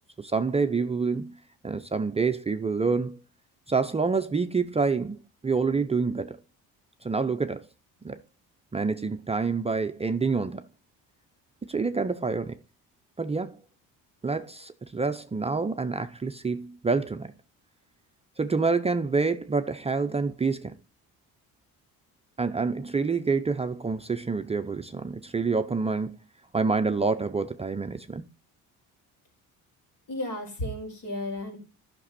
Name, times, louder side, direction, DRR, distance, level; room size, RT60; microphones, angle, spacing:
voice 1, 0.2-1.3 1.6-3.2 3.7-5.2 5.4-6.4 7.0-7.7 8.0-8.2 8.7-10.7 11.6-12.6 13.2-13.6 14.2-17.3 18.4-20.7 22.4-26.2 26.5-28.2, right 4 dB, 15° right, 0.5 m, -27 dB
voice 2, 30.1-31.6, left 1 dB, 65° left, 4.9 m, -33 dB
11.5 x 6.1 x 4.1 m
cardioid pair, 105°, 37 cm